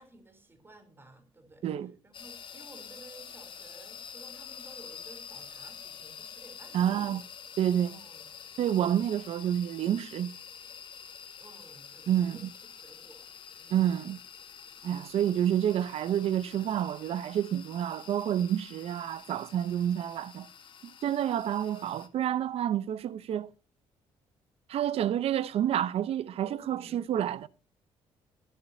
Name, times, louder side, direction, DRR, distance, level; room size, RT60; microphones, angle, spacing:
voice 1, 0.0-1.6 2.0-7.1 7.9-8.3 11.4-13.3 13.6-13.9 26.4-27.0, right 2 dB, 20° right, 3.7 m, -54 dB
sound 1, 2.1-22.1, left 7 dB, 50° left, 1.7 m, -48 dB
voice 2, 6.7-7.2 7.6-8.0 8.6-10.3 12.1-12.5 13.7-14.2 14.8-20.5 21.0-23.5 24.7-27.5, right 10 dB, 65° right, 0.8 m, -29 dB
23.0 x 10.5 x 2.8 m
cardioid pair, 110°, 11 cm